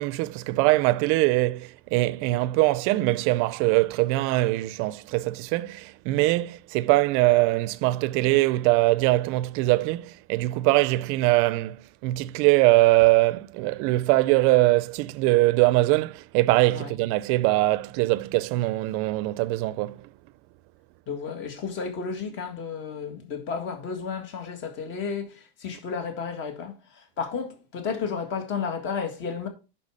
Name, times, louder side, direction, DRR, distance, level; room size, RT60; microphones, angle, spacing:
voice 1, 0.0-20.1, right 19 dB, 50° right, 0.5 m, -22 dB
voice 2, 21.1-29.5, left 5 dB, 40° left, 1.7 m, -32 dB
6.5 x 5.9 x 5.0 m
supercardioid pair, 140°, 29 cm